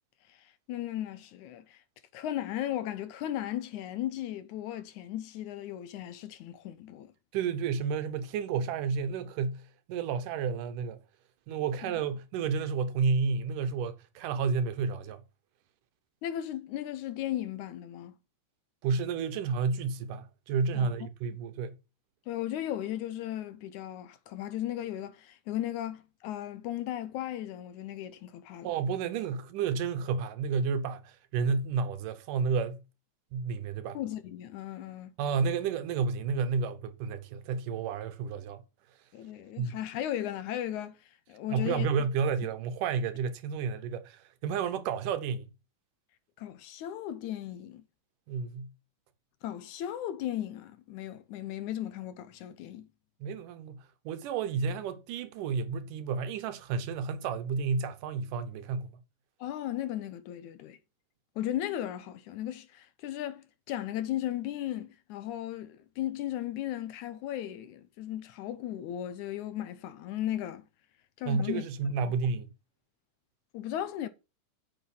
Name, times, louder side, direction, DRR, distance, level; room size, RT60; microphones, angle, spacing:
voice 1, 0.7-1.8 2.1-7.1 16.2-18.1 20.7-20.9 22.3-28.7 33.9-35.1 39.1-41.0 41.3-41.9 46.4-47.8 49.4-52.9 59.4-60.8 61.4-70.7 71.2-71.6 72.1-72.2 73.5-74.1, left 12 dB, 75° left, 2.2 m, -36 dB
voice 2, 7.3-11.0 11.5-15.2 18.8-21.8 28.6-32.8 33.3-34.0 35.2-38.6 39.6-39.8 41.5-45.5 48.3-48.7 53.2-59.0 71.3-72.5, right 5 dB, 90° right, 2.6 m, -31 dB
8.5 x 6.8 x 5.5 m
omnidirectional pair, 3.6 m